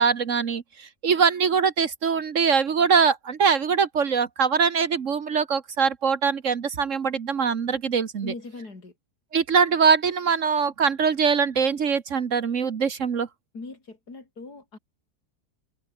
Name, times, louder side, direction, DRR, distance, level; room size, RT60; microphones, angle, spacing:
voice 1, 0.0-8.3 9.3-13.3, right 6 dB, 55° right, 1.5 m, -22 dB
voice 2, 8.2-8.9 13.5-14.8, left 3 dB, 75° left, 4.7 m, -40 dB
omnidirectional pair, 1.7 m